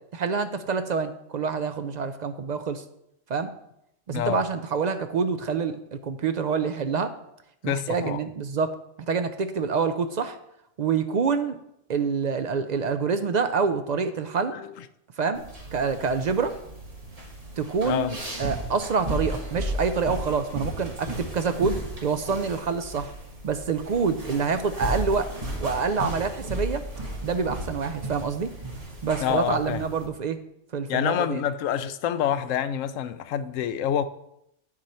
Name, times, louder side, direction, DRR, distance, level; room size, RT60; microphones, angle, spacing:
voice 1, 0.1-2.8 3.3-3.5 4.1-7.1 7.6-8.8 9.1-10.4 10.8-11.6 11.9-14.6 15.2-15.4 15.7-16.5 17.6-23.1 23.4-25.3 25.6-26.8 27.2-28.5 29.0-30.4 30.7-31.4, right 5 dB, 65° right, 9 dB, 0.4 m, -26 dB
voice 2, 7.6-8.2 14.5-14.7 17.8-18.1 29.2-29.8 30.9-34.1, left 10 dB, 90° left, 12 dB, 1.0 m, -27 dB
sound 1, 15.3-30.1, right 1 dB, 30° right, 1.6 m, -35 dB
9.0 x 6.1 x 4.2 m, 0.79 s
omnidirectional pair, 1.3 m